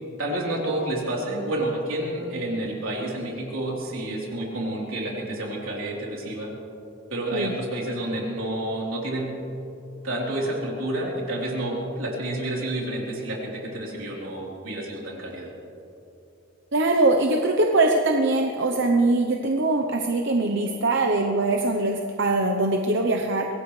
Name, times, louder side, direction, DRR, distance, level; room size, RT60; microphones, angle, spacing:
voice 1, 0.2-6.5 7.1-9.4 10.0-15.5, right 1 dB, 85° right, -3 dB, 3.7 m, -29 dB
voice 2, 16.7-23.5, right 2 dB, 60° right, 3 dB, 0.9 m, -22 dB
23.5 x 18.0 x 3.3 m, 2.9 s
head